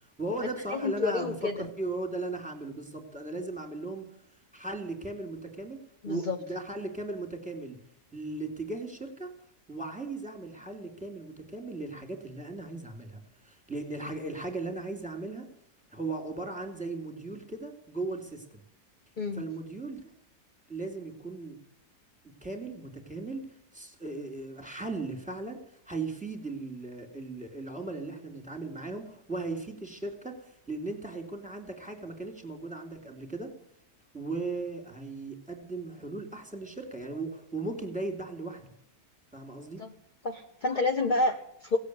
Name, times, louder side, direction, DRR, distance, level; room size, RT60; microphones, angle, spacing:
voice 1, 0.2-4.0 4.5-7.8 8.1-9.3 9.7-15.5 15.9-18.6 19.3-20.0 20.7-21.6 22.4-25.6 25.9-33.5 34.1-38.7 39.3-39.8, right 2 dB, 5° right, 4 dB, 2.7 m, -37 dB
voice 2, 0.7-1.7 6.0-6.4 19.2-19.4 39.8-39.9 40.2-41.8, left 2 dB, 30° left, 4 dB, 1.2 m, -29 dB
17.5 x 8.1 x 9.5 m, 0.75 s
omnidirectional pair, 1.7 m